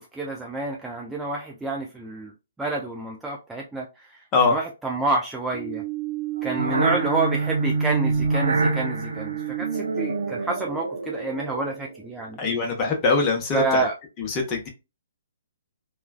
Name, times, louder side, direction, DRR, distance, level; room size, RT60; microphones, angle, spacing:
voice 1, 0.0-2.3 2.6-4.1 4.5-5.8 6.4-12.4 13.5-13.9, right 2 dB, 5° right, 0.4 m, -28 dB
sound 1, 5.5-11.9, right 4 dB, 75° right, 0.5 m, -26 dB
voice 2, 12.4-13.9 14.2-14.7, left 4 dB, 25° left, 1.0 m, -22 dB
3.0 x 2.3 x 2.3 m
figure-of-eight pair, 130°, 0 cm